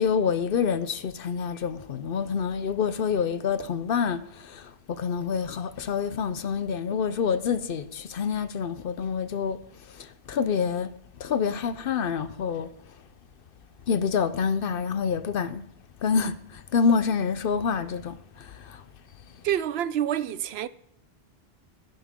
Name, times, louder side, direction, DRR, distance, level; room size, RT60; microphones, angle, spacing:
voice 1, 0.0-9.6 9.9-10.9 11.2-12.7 13.9-15.6 16.0-18.8, left 6 dB, 65° left, 0.8 m, -27 dB
voice 2, 19.4-20.7, right 10 dB, 80° right, 0.8 m, -27 dB
11.5 x 11.0 x 3.6 m
omnidirectional pair, 1.1 m